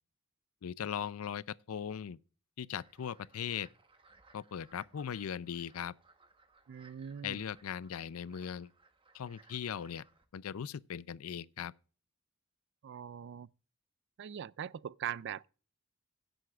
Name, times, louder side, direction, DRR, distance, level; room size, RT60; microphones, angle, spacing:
voice 1, 0.6-2.2 2.6-3.7 4.3-5.9 7.2-8.7 9.1-10.0 10.3-11.7, left 8 dB, 85° left, 0.4 m, -39 dB
sound 1, 2.8-10.3, right 3 dB, 25° right, 1.1 m, -64 dB
voice 2, 6.7-7.4 12.8-13.5 14.2-15.5, right 9 dB, 55° right, 0.3 m, -41 dB
16.5 x 7.9 x 2.4 m
head